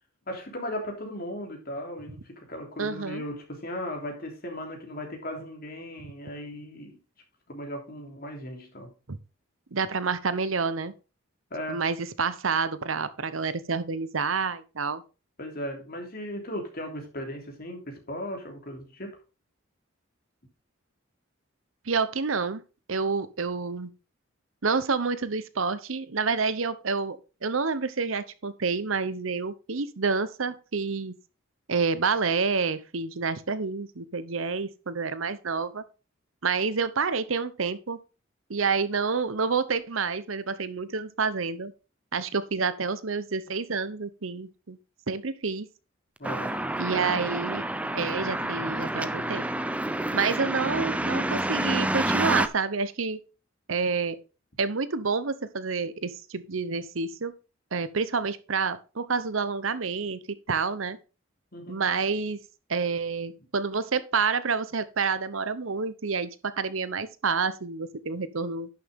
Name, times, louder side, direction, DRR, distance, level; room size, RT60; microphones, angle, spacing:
voice 1, 0.3-7.0 7.5-8.9 11.5-11.8 15.4-19.2 46.2-46.9 61.5-61.8, equal, 50° left, 3.3 m, -37 dB
voice 2, 2.8-3.2 9.1-9.2 9.7-10.9 11.7-15.0 21.9-22.6 22.9-23.9 24.6-31.1 31.7-35.8 36.4-38.0 38.5-41.7 42.1-44.8 45.1-45.7 46.8-47.6 47.9-49.5 50.1-53.2 53.7-54.2 54.6-57.3 57.7-60.2 60.5-61.0 61.7-62.4 62.7-68.7, right 5 dB, 80° right, 0.9 m, -28 dB
sound 1, 46.2-52.5, right 1 dB, 5° right, 0.6 m, -28 dB
11.0 x 6.8 x 3.6 m
head